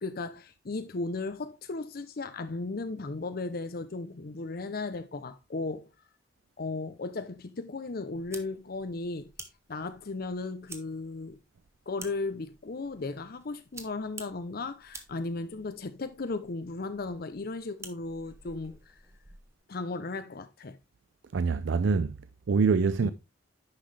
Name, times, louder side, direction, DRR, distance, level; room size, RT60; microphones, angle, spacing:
voice 1, 0.0-5.9 6.6-9.3 9.7-11.4 11.9-19.0 19.7-20.8 23.0-23.1, left 3 dB, 55° left, 0.6 m, -36 dB
sound 1, 8.1-19.6, right 3 dB, 15° right, 1.2 m, -51 dB
voice 2, 21.3-22.2 22.5-23.1, right 5 dB, 75° right, 0.4 m, -25 dB
9.8 x 6.0 x 3.2 m
head